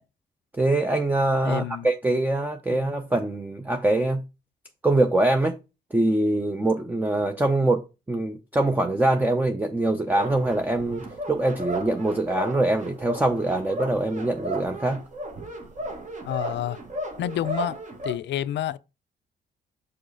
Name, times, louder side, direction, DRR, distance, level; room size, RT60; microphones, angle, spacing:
voice 1, 0.5-4.2 4.8-5.6 5.9-15.0, right 2 dB, 10° right, 0.6 m, -24 dB
voice 2, 1.4-1.9 2.7-2.9 16.2-16.8 17.2-18.8, left 12 dB, 65° left, 0.5 m, -29 dB
sound 1, 10.1-18.1, right 1 dB, 40° right, 1.3 m, -34 dB
5.2 x 4.0 x 4.7 m
cardioid pair, 90°, 20 cm